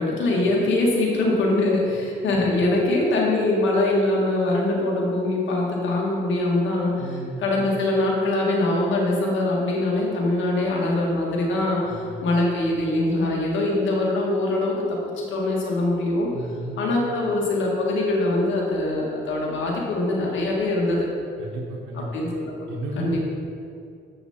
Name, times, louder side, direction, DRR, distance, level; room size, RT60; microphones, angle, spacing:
voice 1, 0.0-16.3 16.8-21.1 21.9-22.7 23.0-23.2, left 2 dB, 70° left, -2 dB, 1.9 m, -23 dB
voice 2, 7.0-7.4 11.8-12.2 16.3-16.8 21.4-22.1 22.7-23.1, right 2 dB, 90° right, -3 dB, 1.1 m, -34 dB
8.0 x 5.8 x 4.3 m, 2.4 s
cardioid pair, 90°, 20 cm